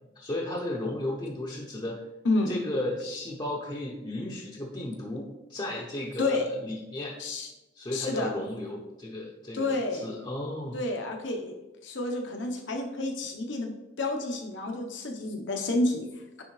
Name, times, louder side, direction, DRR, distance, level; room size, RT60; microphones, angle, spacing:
voice 1, 0.2-2.0 2.5-7.2 7.7-10.8, left 1 dB, 25° left, -1 dB, 0.6 m, -34 dB
voice 2, 7.2-7.5 7.9-8.3 9.5-10.1 10.7-11.5 11.8-13.7 14.0-16.4, left 2 dB, 85° left, 2 dB, 0.9 m, -30 dB
9.6 x 3.6 x 3.2 m, 1.0 s
head